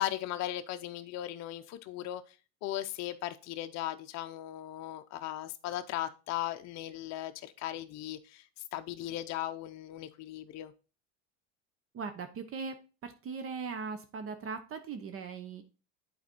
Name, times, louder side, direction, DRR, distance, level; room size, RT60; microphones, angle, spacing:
voice 1, 0.0-10.7, left 13 dB, 50° left, 0.6 m, -37 dB
voice 2, 11.9-12.8 13.0-15.6, right 5 dB, 40° right, 0.9 m, -39 dB
8.2 x 4.2 x 4.4 m
supercardioid pair, 110°, 35 cm